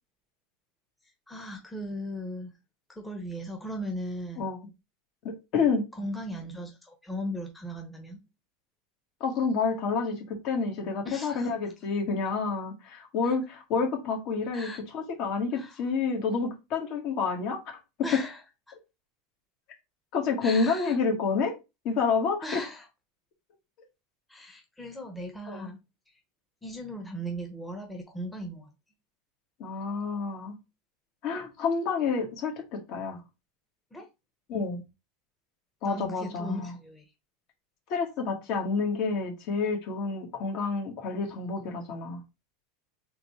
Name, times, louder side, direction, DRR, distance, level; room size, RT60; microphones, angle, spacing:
voice 1, 1.3-2.5 2.9-4.5 5.9-8.2 11.0-11.5 13.2-13.4 14.5-14.8 15.5-15.8 18.0-18.4 18.7-18.8 20.4-21.0 22.4-22.9 24.3-25.8 26.6-28.7 33.9-34.0 35.8-37.0, equal, 10° left, 1.0 m, -37 dB
voice 2, 5.2-5.9 9.2-17.8 18.1-18.2 20.1-21.5 21.8-22.6 25.5-25.7 29.6-30.5 31.2-33.2 34.5-34.8 35.8-36.7 37.9-42.2, left 5 dB, 55° left, 1.5 m, -29 dB
3.8 x 3.5 x 3.1 m
supercardioid pair, 120°, 0 cm